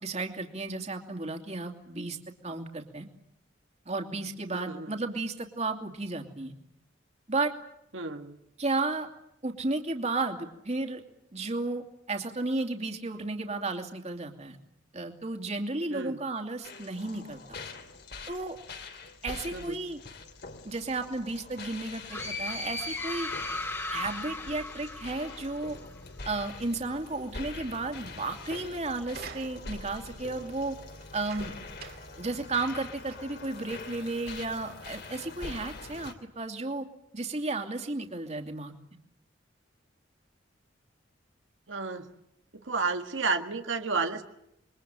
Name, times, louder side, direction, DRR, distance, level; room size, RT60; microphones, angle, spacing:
voice 1, 0.0-2.2 2.4-3.1 3.9-6.5 7.3-7.5 8.6-9.1 9.4-11.0 11.3-14.6 14.9-17.6 18.3-18.6 19.2-20.0 20.6-23.3 23.9-25.8 26.2-30.8 31.1-31.5 32.2-36.9 37.1-38.7, right 3 dB, 35° right, 4 dB, 2.7 m, -33 dB
voice 2, 4.5-4.9 7.9-8.4 15.9-16.2 19.5-19.8 41.7-42.1 42.5-44.2, right 4 dB, 90° right, 5 dB, 1.7 m, -31 dB
sound 1, 16.6-36.1, left 3 dB, 60° left, 3.0 m, -44 dB
sound 2, 22.1-25.8, left 2 dB, 15° left, 2.0 m, -36 dB
sound 3, 29.1-29.9 31.0-32.2 32.6-32.7 33.0-33.5 34.3-34.4, right 5 dB, 55° right, 2.7 m, -47 dB
27.5 x 23.0 x 9.0 m, 0.79 s
head